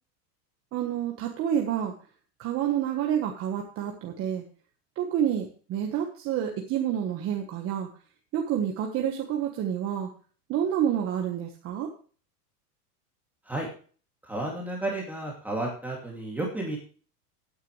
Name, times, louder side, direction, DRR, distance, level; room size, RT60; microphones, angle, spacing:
voice 1, 0.7-1.9 2.4-4.4 5.0-7.9 8.3-10.1 10.5-11.9, right 9 dB, 30° right, 2 dB, 1.3 m, -28 dB
voice 2, 14.2-16.8, right 2 dB, 5° right, -2 dB, 2.4 m, -32 dB
14.5 x 9.5 x 3.2 m, 0.41 s
supercardioid pair, 160°, 46 cm